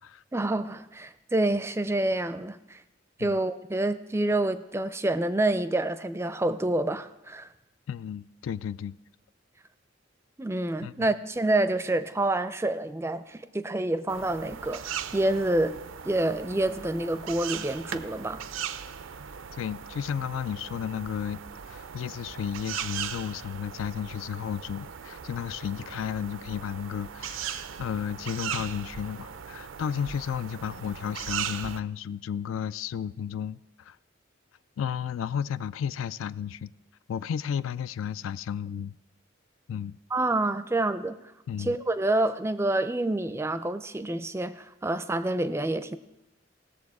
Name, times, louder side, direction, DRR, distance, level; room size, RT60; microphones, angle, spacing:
voice 1, 0.3-2.8 3.2-7.5 10.4-15.8 16.0-18.4 40.1-41.2 41.6-46.0, right 2 dB, 15° right, 0.4 m, -27 dB
voice 2, 7.9-9.0 10.8-11.1 19.5-21.4 21.7-34.0 34.8-36.7 37.1-38.9 39.7-40.0 41.5-41.8, left 8 dB, 90° left, 0.3 m, -33 dB
sound 1, 14.1-31.8, right 8 dB, 85° right, 0.5 m, -39 dB
18.0 x 7.0 x 4.8 m
head